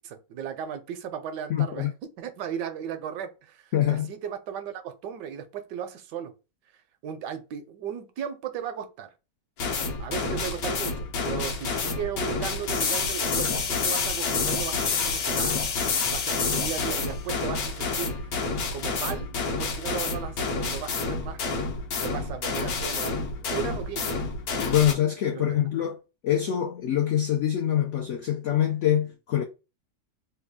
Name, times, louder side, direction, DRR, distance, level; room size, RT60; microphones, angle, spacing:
voice 1, 0.0-6.3 7.0-9.1 10.0-15.6 16.0-18.4 18.7-21.4 22.0-24.3 25.3-25.5, right 8 dB, 80° right, 1.2 m, -36 dB
voice 2, 1.5-1.9 3.7-4.1 24.6-26.0 26.2-29.4, left 11 dB, 80° left, 0.6 m, -24 dB
sound 1, 9.6-24.9, left 4 dB, 65° left, 1.1 m, -28 dB
3.3 x 2.3 x 3.5 m
omnidirectional pair, 1.9 m